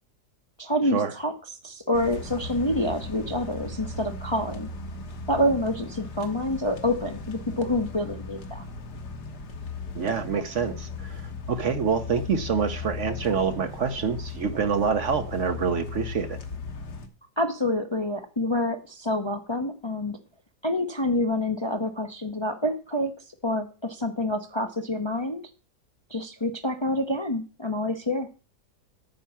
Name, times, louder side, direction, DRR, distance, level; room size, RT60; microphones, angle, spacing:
voice 1, 0.6-1.3 1.6-4.7 5.3-8.6 17.4-20.2 20.6-23.1 23.4-25.4 26.1-28.3, left 1 dB, 25° left, 0.6 m, -27 dB
sound 1, 1.9-17.1, left 3 dB, 85° left, 1.9 m, -37 dB
voice 2, 9.9-16.4, right 6 dB, 55° right, 1.0 m, -26 dB
9.2 x 5.8 x 7.2 m
omnidirectional pair, 1.7 m